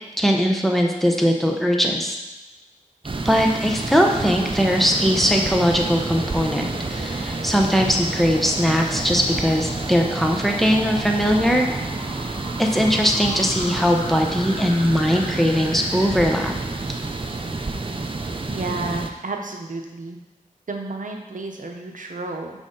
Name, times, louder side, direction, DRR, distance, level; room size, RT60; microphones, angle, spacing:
voice 1, 0.2-2.2 3.2-11.7 12.6-16.5, equal, ahead, 1 dB, 0.9 m, -20 dB
sound 1, 3.0-19.1, right 3 dB, 40° right, 0.5 m, -29 dB
sound 2, 4.5-16.5, left 1 dB, 80° left, 2.3 m, -40 dB
voice 2, 18.5-20.2 20.7-22.5, right 3 dB, 70° right, 2 dB, 0.8 m, -31 dB
6.2 x 5.0 x 3.9 m, 1.1 s
wide cardioid pair, 70°, 14 cm